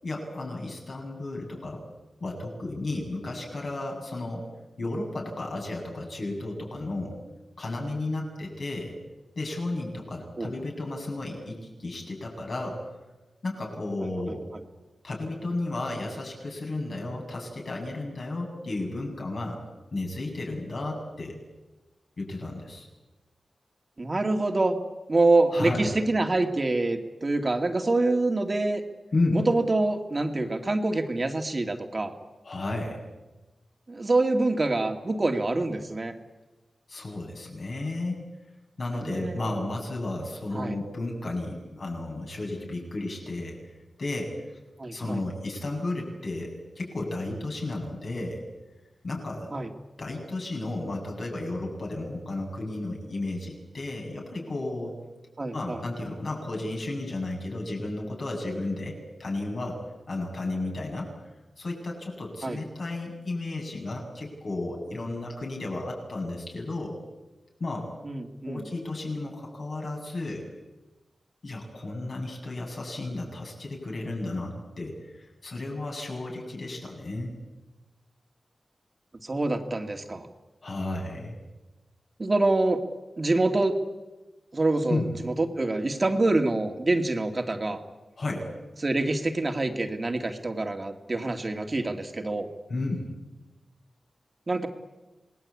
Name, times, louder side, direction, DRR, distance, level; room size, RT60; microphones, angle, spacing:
voice 1, 0.0-1.8 2.2-4.5 4.8-7.2 7.6-9.0 9.4-12.8 13.4-14.5 15.0-19.6 19.9-21.4 22.2-22.9 25.5-25.9 29.1-29.4 32.4-33.0 36.9-38.2 38.8-43.6 44.0-44.3 44.9-48.4 49.0-49.5 50.0-55.0 55.5-58.9 59.2-59.8 60.1-61.1 61.6-67.0 67.6-67.9 68.5-70.5 71.4-77.3 80.6-81.4 84.9-85.1 88.2-88.5 92.7-93.1, left 2 dB, 60° left, 0 dB, 7.8 m, -33 dB
voice 2, 24.0-24.8 25.1-28.8 29.3-32.1 33.9-36.1 38.9-39.6 40.5-40.8 44.8-45.2 49.5-49.7 55.4-55.8 62.4-62.6 68.0-68.6 79.2-80.3 82.2-82.8 83.2-83.8 84.5-87.8 88.8-92.5 94.5-94.7, right 2 dB, 35° right, 4 dB, 2.3 m, -26 dB
27.5 x 20.0 x 8.5 m, 1.1 s
wide cardioid pair, 90°, 0 cm